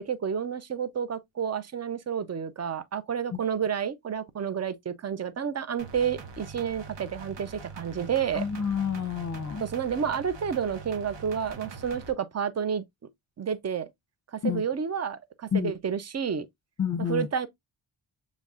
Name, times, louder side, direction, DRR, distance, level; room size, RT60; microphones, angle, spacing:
voice 1, 0.0-8.4 9.6-12.8 13.4-13.9 14.3-16.5 17.1-17.5, right 7 dB, 35° right, 0.5 m, -30 dB
sound 1, 5.8-12.1, right 4 dB, 60° right, 1.0 m, -43 dB
voice 2, 8.3-9.6 14.4-14.6 15.5-15.7 16.8-17.3, left 7 dB, 35° left, 0.7 m, -28 dB
6.8 x 3.1 x 2.4 m
wide cardioid pair, 155°, 50 cm